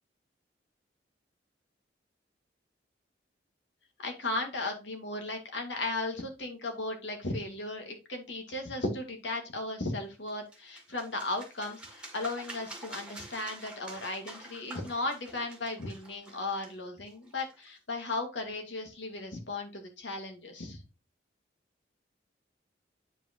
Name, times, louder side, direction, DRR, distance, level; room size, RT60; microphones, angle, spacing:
voice 1, 4.0-20.8, left 2 dB, 80° left, 4 dB, 2.2 m, -36 dB
sound 1, 10.3-17.8, right 2 dB, 5° right, 1.8 m, -48 dB
9.0 x 5.1 x 3.1 m, 0.28 s
head